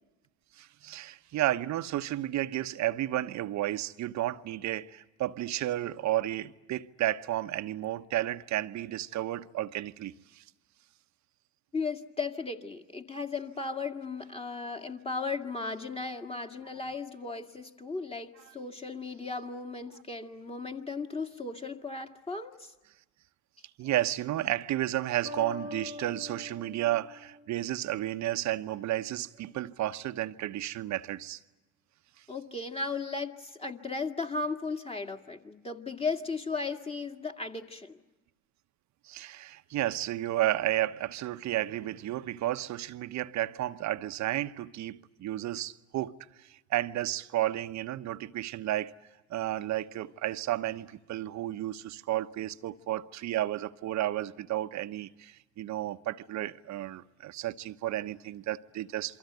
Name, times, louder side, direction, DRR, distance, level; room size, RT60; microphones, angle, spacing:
voice 1, 0.6-10.4 23.8-31.4 39.0-46.1 46.4-48.9 49.3-59.2, right 14 dB, 50° right, 1.0 m, -32 dB
voice 2, 11.7-22.7 23.8-23.9 32.3-38.0, left 4 dB, 15° left, 2.1 m, -36 dB
sound 1, 25.3-28.1, left 2 dB, 80° left, 6.8 m, -44 dB
28.5 x 24.0 x 8.1 m
hypercardioid pair, 70°, 38 cm